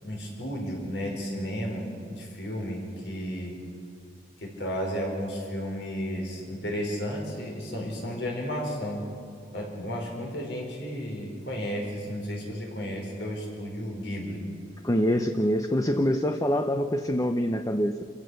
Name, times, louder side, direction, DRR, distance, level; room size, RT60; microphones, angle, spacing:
voice 1, 0.0-3.6 4.4-9.0 9.5-14.4, equal, 70° left, 0 dB, 5.3 m, -33 dB
voice 2, 14.8-18.0, equal, 20° left, 7 dB, 0.7 m, -25 dB
28.0 x 15.5 x 6.5 m, 2.5 s
head